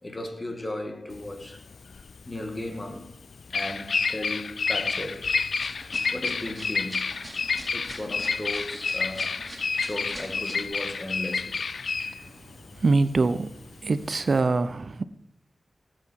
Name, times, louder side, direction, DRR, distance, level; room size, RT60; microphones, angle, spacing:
voice 1, 0.0-1.7 1.9-3.1 3.5-5.5 6.1-7.3 7.7-11.7, left 1 dB, 30° left, 2.2 m, -36 dB
Bird vocalization bird call bird song, 1.1-14.4, left 5 dB, 75° left, 0.4 m, -30 dB
sound 1, 5.5-10.7, right 1 dB, 20° right, 4.0 m, -44 dB
voice 2, 12.8-13.6 13.8-15.0, right 3 dB, 60° right, 0.8 m, -23 dB
19.5 x 8.0 x 4.8 m
cardioid pair, 60°, 0 cm